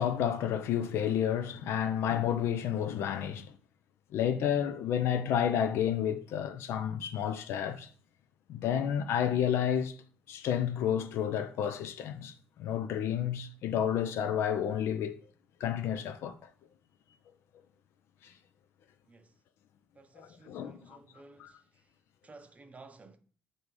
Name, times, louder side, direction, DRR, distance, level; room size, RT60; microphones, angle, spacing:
voice 1, 0.0-3.5 4.1-7.9 8.5-9.9 10.3-15.2 15.6-16.3 20.2-21.0 21.4-21.5, left 9 dB, 70° left, 0.4 m, -30 dB
voice 2, 20.0-21.5 22.2-23.2, right 3 dB, 30° right, 0.6 m, -54 dB
3.4 x 2.6 x 4.6 m
hypercardioid pair, 50°, 5 cm